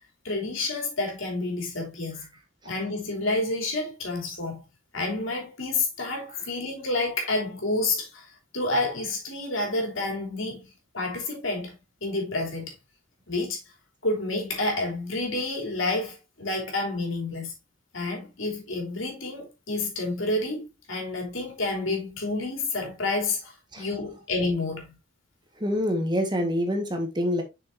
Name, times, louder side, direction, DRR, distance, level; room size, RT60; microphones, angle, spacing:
voice 1, 0.2-2.3 2.6-4.6 4.9-11.7 12.0-12.7 13.3-13.6 14.0-17.5 17.9-25.0, left 2 dB, 80° left, 3.4 m, -29 dB
voice 2, 25.6-27.4, equal, 20° right, 1.6 m, -26 dB
7.7 x 6.2 x 2.7 m
head